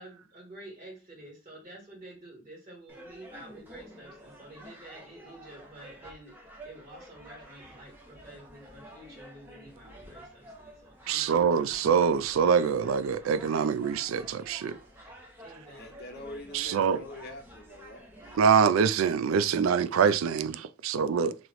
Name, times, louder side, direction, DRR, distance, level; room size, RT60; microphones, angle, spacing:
voice 1, 0.0-11.9 15.4-15.9, right 1 dB, 35° right, 1.9 m, -49 dB
sound 1, 2.9-18.4, equal, 10° right, 0.7 m, -50 dB
voice 2, 11.1-14.8 16.5-17.0 18.4-21.4, right 6 dB, 75° right, 0.3 m, -25 dB
voice 3, 15.7-18.1, left 1 dB, 45° left, 0.7 m, -44 dB
3.1 x 3.0 x 3.9 m
head